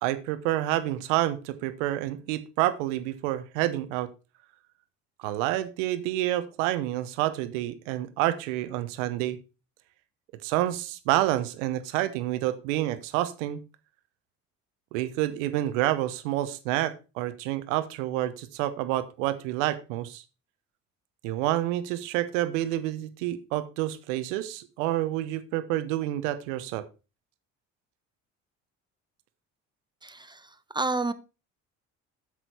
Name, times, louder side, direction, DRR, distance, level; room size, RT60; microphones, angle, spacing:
voice 1, 0.0-4.1 5.2-9.4 10.4-13.6 14.9-20.2 21.2-26.9, right 14 dB, 80° right, 0.9 m, -28 dB
voice 2, 30.0-31.1, right 3 dB, 10° right, 1.0 m, -30 dB
8.2 x 6.1 x 4.5 m
hypercardioid pair, 55°, 37 cm